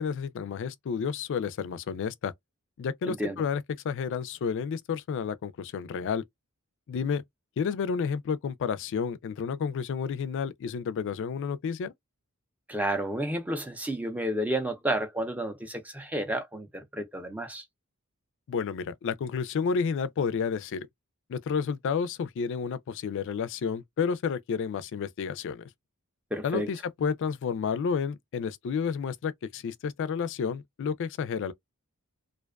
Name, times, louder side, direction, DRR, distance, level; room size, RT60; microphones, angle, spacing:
voice 1, 0.0-2.3 2.8-6.2 6.9-7.2 7.6-11.9 18.5-20.9 21.3-25.7 26.4-31.5, left 6 dB, 60° left, 0.3 m, -31 dB
voice 2, 3.1-3.4 12.7-17.6 26.3-26.7, right 1 dB, 5° right, 0.5 m, -31 dB
2.4 x 2.2 x 2.2 m
head